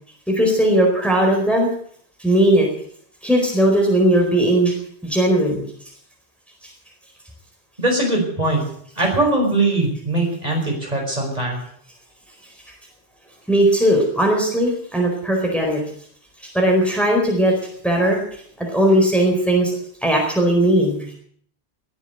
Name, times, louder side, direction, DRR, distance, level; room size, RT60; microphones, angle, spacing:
voice 1, 0.3-1.7 2.2-2.7 3.2-4.7 5.0-5.6 13.5-15.8 16.4-17.5 17.8-18.2 18.6-19.7 20.0-21.1, right 1 dB, ahead, 0 dB, 4.4 m, -18 dB
voice 2, 7.8-8.7 9.0-11.6, right 2 dB, 35° right, 0 dB, 5.4 m, -21 dB
20.0 x 9.1 x 8.0 m, 0.62 s
omnidirectional pair, 1.1 m